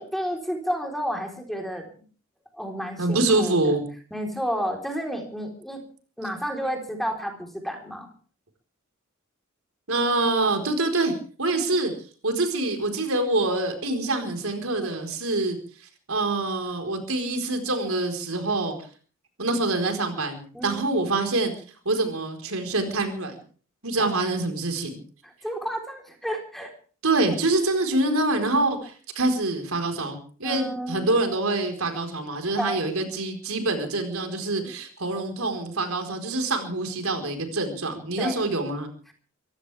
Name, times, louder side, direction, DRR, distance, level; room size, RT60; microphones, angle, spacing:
voice 1, 0.0-1.8 2.5-3.8 4.1-5.8 6.2-8.1 20.5-20.9 24.0-24.1 25.2-26.7 30.4-31.1 32.6-32.8 38.2-38.4, equal, ahead, 2 dB, 4.0 m, -31 dB
voice 2, 3.0-3.8 9.9-11.1 11.4-11.9 12.2-15.6 16.1-18.8 19.4-21.5 21.8-23.4 23.8-25.0 27.0-38.9, right 2 dB, 80° right, 5 dB, 4.4 m, -25 dB
24.5 x 16.0 x 3.5 m, 0.42 s
head